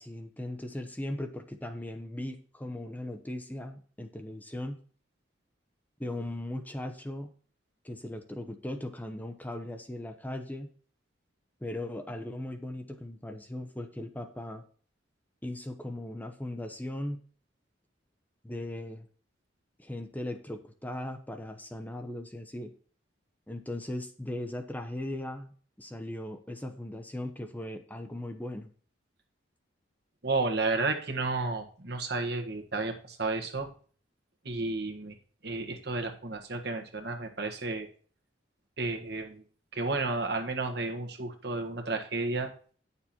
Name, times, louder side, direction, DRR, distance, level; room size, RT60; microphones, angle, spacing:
voice 1, 0.0-4.8 6.0-7.3 7.8-10.7 11.6-14.6 15.4-17.2 18.4-19.1 19.8-22.7 23.5-28.7, left 1 dB, 10° left, 5 dB, 0.8 m, -38 dB
voice 2, 30.2-33.7 34.4-35.1 35.4-37.9 38.8-39.4 39.7-42.5, right 3 dB, 60° right, 4 dB, 1.6 m, -32 dB
10.0 x 7.0 x 4.4 m, 0.42 s
head